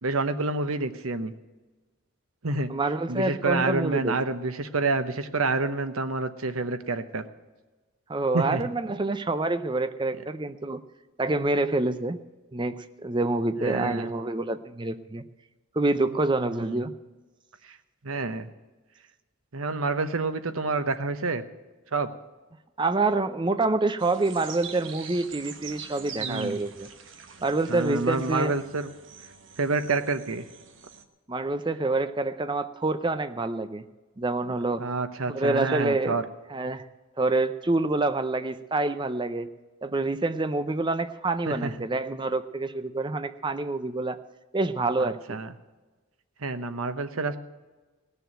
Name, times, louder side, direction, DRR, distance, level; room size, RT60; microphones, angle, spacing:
voice 1, 0.0-1.3 2.4-2.7 3.1-7.2 8.3-8.6 8.9-9.0 13.6-14.1 16.5-16.8 17.6-17.8 18.0-18.5 19.5-21.4 21.9-22.1 26.2-26.6 27.7-28.9 29.6-30.4 34.4-36.2 41.5-41.7 45.0-45.5 46.4-47.4, right 3 dB, 85° right, 10 dB, 1.0 m, -28 dB
voice 2, 2.7-4.2 8.1-10.8 11.2-12.2 12.5-15.2 15.8-16.9 22.8-26.9 27.4-28.5 31.3-33.8 34.2-34.8 35.3-36.2 36.5-36.8 37.2-39.5 39.8-44.2 44.5-45.4, right 2 dB, 20° right, 11 dB, 0.5 m, -27 dB
sound 1, 24.0-31.0, right 7 dB, 60° right, 1.2 m, -43 dB
17.0 x 6.9 x 9.0 m, 1.2 s
head